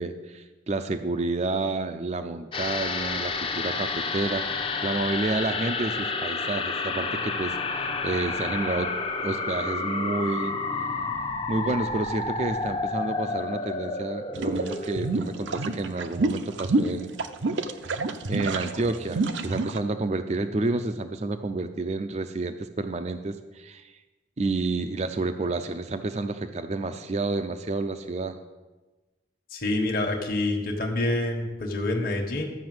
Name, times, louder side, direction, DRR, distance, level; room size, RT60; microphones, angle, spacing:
voice 1, 0.0-8.9 9.2-10.6 11.5-17.1 18.3-23.9 24.4-28.4, right 3 dB, 35° right, 7 dB, 0.4 m, -30 dB
sound 1, 2.5-17.2 17.5-17.6, left 4 dB, 25° left, 0.7 m, -31 dB
sound 2, 14.3-19.8, right 3 dB, 75° right, 0.7 m, -27 dB
voice 2, 29.5-32.5, left 2 dB, 45° left, 0 dB, 1.3 m, -27 dB
12.0 x 5.8 x 7.7 m, 1.2 s
head